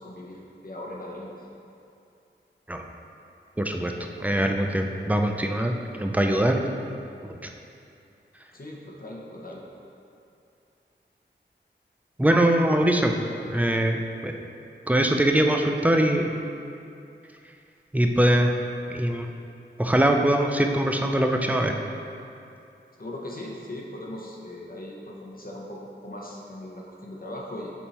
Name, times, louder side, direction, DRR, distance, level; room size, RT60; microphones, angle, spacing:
voice 1, 0.0-1.5 8.5-9.6 23.0-27.7, left 1 dB, 45° left, -3 dB, 0.9 m, -39 dB
voice 2, 3.6-3.9 4.2-6.6 7.2-7.5 12.2-13.1 13.5-14.3 14.9-16.3 17.9-18.5 18.9-19.3 19.8-21.7, right 1 dB, 10° right, 3 dB, 0.4 m, -22 dB
6.9 x 3.6 x 4.2 m, 2.6 s
wide cardioid pair, 75°, 20 cm